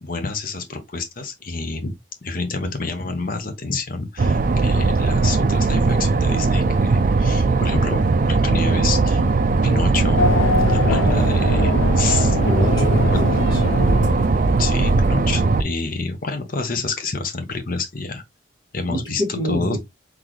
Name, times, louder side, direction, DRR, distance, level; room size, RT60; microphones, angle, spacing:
voice 1, 0.0-1.9 2.2-9.2 9.6-10.3 10.7-12.4 13.1-13.2 14.6-18.2 18.7-19.8, left 3 dB, 45° left, 0.9 m, -28 dB
sound 1, 4.2-15.6, right 3 dB, 45° right, 0.4 m, -18 dB
Race car auto racing / Accelerating revving vroom, 10.2-14.9, left 4 dB, 85° left, 0.5 m, -24 dB
voice 2, 12.4-13.6 18.9-19.8, equal, 25° left, 2.1 m, -26 dB
3.9 x 3.2 x 3.0 m
head